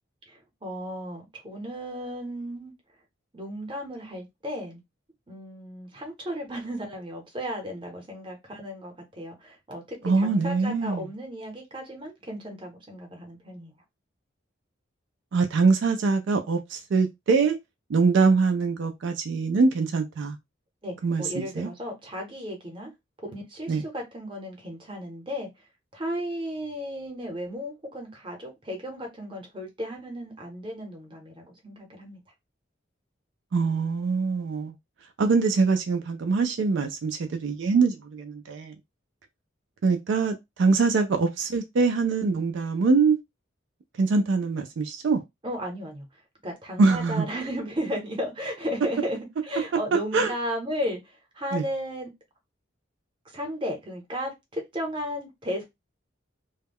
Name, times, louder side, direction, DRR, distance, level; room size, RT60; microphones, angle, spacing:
voice 1, 0.3-2.7 3.3-4.8 5.3-13.7 20.8-22.9 23.3-25.5 25.9-32.2 45.4-46.1 46.4-49.2 49.5-52.1 53.3-55.6, equal, 25° right, 0.8 m, -34 dB
voice 2, 10.0-11.1 15.3-17.6 17.9-20.4 21.0-21.7 23.7-23.8 33.5-34.7 35.2-38.7 39.8-43.2 44.0-45.2 46.8-47.3 50.1-50.3 51.5-51.7, right 4 dB, 70° right, 0.3 m, -23 dB
2.2 x 2.1 x 3.4 m
head